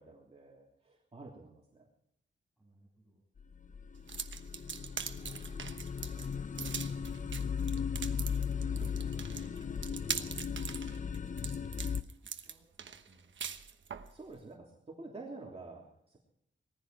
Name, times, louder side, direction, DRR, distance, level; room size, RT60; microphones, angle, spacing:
voice 1, 0.0-1.9 14.1-16.2, right 3 dB, 30° right, -3 dB, 3.0 m, -49 dB
voice 2, 2.6-3.2 4.6-5.5 5.9-7.1 8.1-9.3 10.1-11.0 11.3-13.6, right 2 dB, ahead, -6 dB, 6.6 m, -64 dB
sound 1, 3.4-12.0, left 6 dB, 40° left, 0.6 m, -37 dB
sound 2, 4.1-14.1, right 7 dB, 70° right, 1.2 m, -42 dB
20.0 x 15.0 x 4.7 m, 0.74 s
wide cardioid pair, 135°, 20 cm